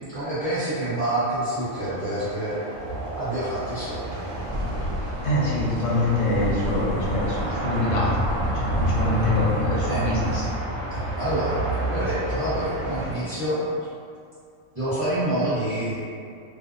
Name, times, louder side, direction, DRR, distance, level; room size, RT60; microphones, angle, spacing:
voice 1, 0.1-2.6 3.2-4.2 9.9-10.0 10.9-13.6 14.7-16.0, right 1 dB, 30° right, -16 dB, 0.8 m, -27 dB
sound 1, 1.6-13.1, right 1 dB, 60° right, 0.6 m, -30 dB
sound 2, 4.3-10.5, equal, 80° right, 0.9 m, -32 dB
voice 2, 5.2-8.1 8.5-10.5, left 1 dB, 75° left, -5 dB, 1.0 m, -24 dB
2.5 x 2.0 x 2.5 m, 2.4 s
omnidirectional pair, 1.4 m